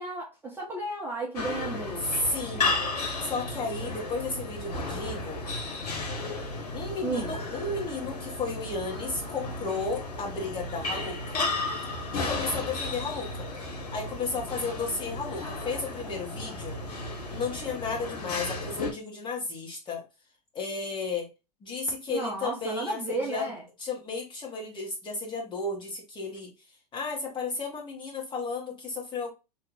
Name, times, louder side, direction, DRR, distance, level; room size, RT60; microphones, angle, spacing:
voice 1, 0.0-2.0 7.0-7.4 22.1-23.6, right 2 dB, 10° right, 1.0 m, -33 dB
sound 1, 1.3-18.9, left 2 dB, 65° left, 1.3 m, -34 dB
voice 2, 2.1-2.7 3.2-5.4 6.7-11.5 12.1-13.4 13.9-16.8 17.3-20.0 20.5-21.3 21.6-23.5 23.8-26.5 26.9-29.3, left 3 dB, 25° left, 1.5 m, -33 dB
3.2 x 2.5 x 3.2 m
figure-of-eight pair, 95°, 21 cm